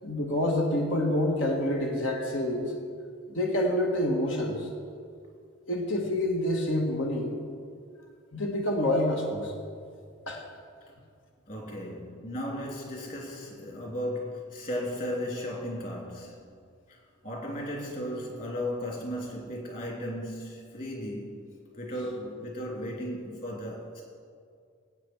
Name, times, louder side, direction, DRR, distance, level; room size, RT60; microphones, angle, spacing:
voice 1, 0.0-2.7 3.3-4.7 5.7-7.3 8.3-9.5 10.3-10.4, left 1 dB, 75° left, 1.6 m, -27 dB
voice 2, 11.5-16.5 16.9-17.0 17.2-21.4 21.7-24.0, equal, 45° left, 3.2 m, -35 dB
17.5 x 8.7 x 4.7 m
head